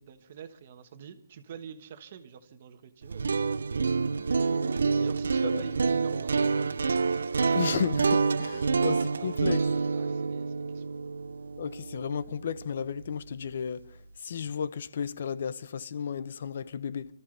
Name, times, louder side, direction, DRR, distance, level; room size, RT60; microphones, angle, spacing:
voice 1, 0.0-3.6 5.0-6.8 9.2-9.6 9.9-11.0, right 8 dB, 40° right, 1.3 m, -46 dB
sound 1, 3.0-13.0, right 4 dB, 85° right, 0.5 m, -28 dB
voice 2, 7.5-9.6 11.6-17.1, left 7 dB, 50° left, 0.7 m, -33 dB
27.0 x 13.5 x 3.4 m
hypercardioid pair, 170°, 0 cm